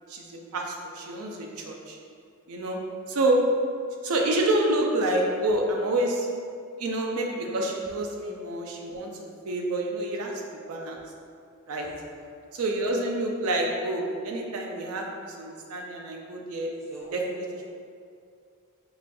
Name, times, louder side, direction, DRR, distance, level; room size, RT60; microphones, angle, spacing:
voice 1, 0.1-2.0 2.5-2.8 3.1-3.4 4.0-6.3 6.8-9.1 9.4-10.3 10.7-11.0 11.7-11.9 12.5-16.7 17.1-17.4, right 1 dB, 80° right, 0 dB, 0.4 m, -28 dB
voice 2, 11.8-12.5 16.8-17.6, right 1 dB, 15° right, -6 dB, 0.5 m, -44 dB
4.9 x 2.2 x 2.5 m, 2.3 s
head